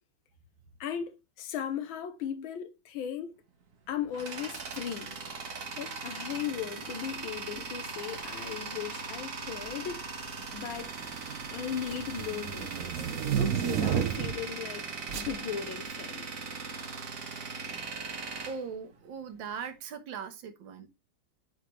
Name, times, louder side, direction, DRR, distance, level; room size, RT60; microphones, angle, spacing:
voice 1, 0.8-3.4 3.9-5.2 5.7-10.2 10.5-11.0 11.5-13.1 13.4-16.3, left 9 dB, 75° left, 1.5 m, -37 dB
Tools, 3.7-19.5, right 4 dB, 45° right, 1.3 m, -39 dB
sound 1, 8.2-8.5 9.4-9.9 10.2-14.5 15.1-15.3, right 9 dB, 85° right, 0.7 m, -32 dB
voice 2, 18.4-20.9, right 6 dB, 65° right, 1.7 m, -40 dB
8.9 x 3.7 x 3.0 m
omnidirectional pair, 2.3 m